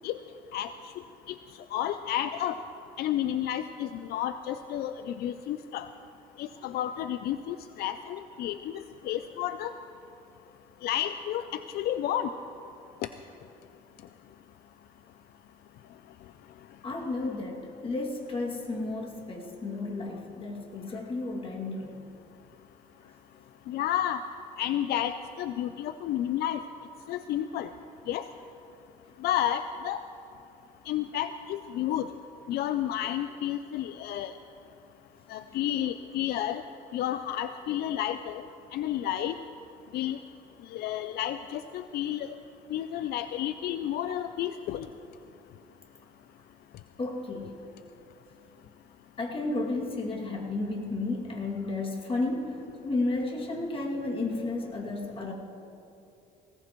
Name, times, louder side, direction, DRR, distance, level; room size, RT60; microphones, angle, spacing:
voice 1, 1.7-2.6 3.0-5.9 6.4-9.7 10.8-12.3 23.7-24.2 24.6-26.6 27.1-27.7 28.1-28.2 29.2-30.0 30.9-32.1 32.5-34.3 35.3-36.6 36.9-38.4 38.7-39.3 39.9-40.2 40.7-42.3 42.7-44.9, left 11 dB, 70° left, 10 dB, 0.5 m, -31 dB
voice 2, 16.8-22.0 23.0-23.1 47.0-47.7 49.2-55.3, left 2 dB, 30° left, -1 dB, 2.4 m, -32 dB
19.5 x 17.5 x 3.1 m, 2.8 s
cardioid pair, 110°, 17 cm